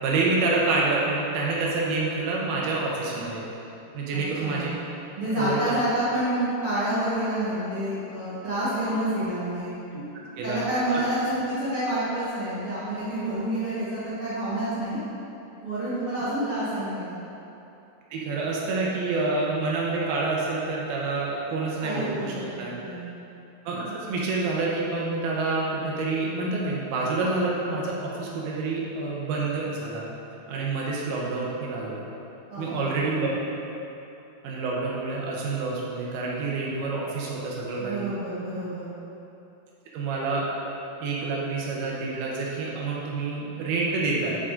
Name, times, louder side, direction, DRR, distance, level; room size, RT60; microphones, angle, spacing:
voice 1, 0.0-3.4 3.9-4.7 5.3-5.7 9.9-10.0 10.4-10.6 18.1-22.7 23.7-30.1 30.5-32.0 32.6-33.3 34.4-38.1 39.9-40.5 41.0-44.4, right 3 dB, 75° right, -4 dB, 2.7 m, -27 dB
voice 2, 4.1-4.7 5.2-9.7 10.4-15.0 15.6-17.2 21.8-23.1 23.8-24.0 32.5-33.2 37.8-38.9, right 1 dB, 60° right, -12 dB, 1.5 m, -28 dB
10.0 x 4.9 x 3.7 m, 2.9 s
omnidirectional pair, 4.6 m